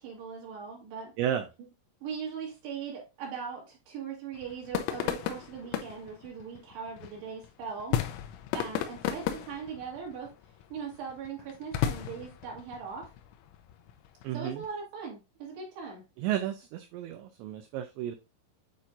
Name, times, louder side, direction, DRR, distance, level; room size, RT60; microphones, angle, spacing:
voice 1, 0.0-1.1 2.0-8.0 8.5-10.3 10.7-13.1 14.3-16.0, right 6 dB, 65° right, 3.3 m, -40 dB
sound 1, 4.3-14.7, left 11 dB, 80° left, 3.0 m, -36 dB
voice 2, 14.2-14.6 16.2-18.2, right 11 dB, 90° right, 2.5 m, -32 dB
8.8 x 4.3 x 2.5 m
omnidirectional pair, 5.8 m